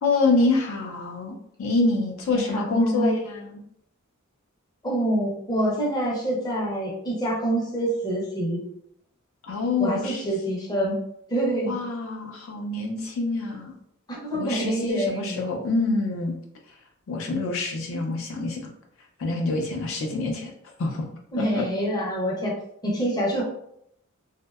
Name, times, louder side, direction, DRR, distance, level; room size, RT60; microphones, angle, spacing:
voice 1, 0.0-1.3 1.6-3.6 9.4-10.3 11.7-13.7 14.3-16.4 17.1-18.7 19.2-20.5 20.8-21.1 21.4-21.6, left 3 dB, 70° left, 1 dB, 0.4 m, -26 dB
voice 2, 2.3-3.1 4.8-8.6 9.8-11.0 11.3-11.8 14.1-15.6 21.3-22.5 22.8-23.4, right 1 dB, 20° left, -3 dB, 0.5 m, -26 dB
2.6 x 2.1 x 2.3 m, 0.74 s
head